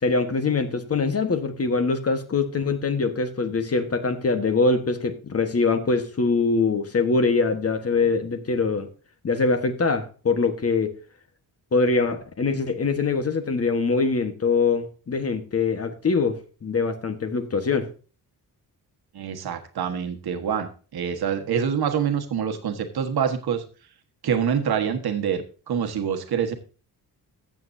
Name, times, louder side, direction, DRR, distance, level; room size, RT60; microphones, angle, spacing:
voice 1, 0.0-8.9 9.2-10.9 11.7-17.9, left 4 dB, 40° left, 8 dB, 1.3 m, -23 dB
voice 2, 19.1-23.6 24.2-26.5, right 7 dB, 75° right, 6 dB, 1.5 m, -26 dB
14.5 x 7.8 x 2.7 m, 0.36 s
wide cardioid pair, 125°, 38 cm